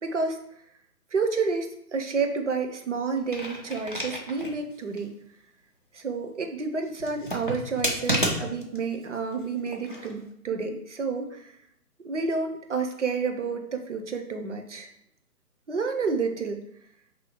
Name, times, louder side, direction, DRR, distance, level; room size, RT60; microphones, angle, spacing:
voice 1, 0.0-0.4 1.1-5.1 5.9-11.5 12.0-14.9 15.7-16.6, right 4 dB, 50° right, 5 dB, 0.6 m, -30 dB
sound 1, 3.2-4.6 5.0-5.1 7.0-8.8 9.7-10.1, equal, 35° left, 0.4 m, -30 dB
3.0 x 2.7 x 4.3 m, 0.74 s
figure-of-eight pair, 140°, 47 cm